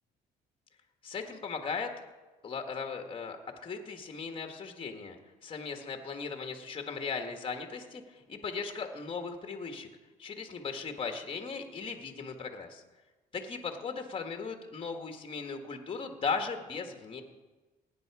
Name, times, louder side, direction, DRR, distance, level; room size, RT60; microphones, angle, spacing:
voice 1, 1.0-1.9 2.4-3.4 3.6-5.2 5.4-9.9 10.2-12.8 13.3-17.2, left 5 dB, 30° left, 5 dB, 1.5 m, -37 dB
17.5 x 9.4 x 4.8 m, 1.2 s
cardioid pair, 110°, 17 cm